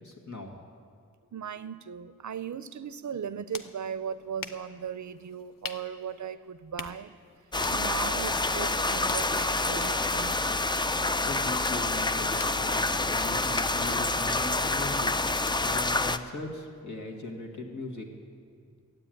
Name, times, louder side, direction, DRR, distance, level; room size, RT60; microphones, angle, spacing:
voice 1, 0.0-0.6 10.9-18.1, left 2 dB, 60° left, 1 dB, 1.9 m, -39 dB
voice 2, 1.3-7.1 7.7-10.4, right 7 dB, 60° right, 14 dB, 0.5 m, -37 dB
sound 1, 3.1-16.8, left 6 dB, 80° left, 0.6 m, -47 dB
sound 2, 7.5-16.2, left 2 dB, 15° left, 0.4 m, -27 dB
12.5 x 8.4 x 9.1 m, 2.2 s
wide cardioid pair, 75°, 33 cm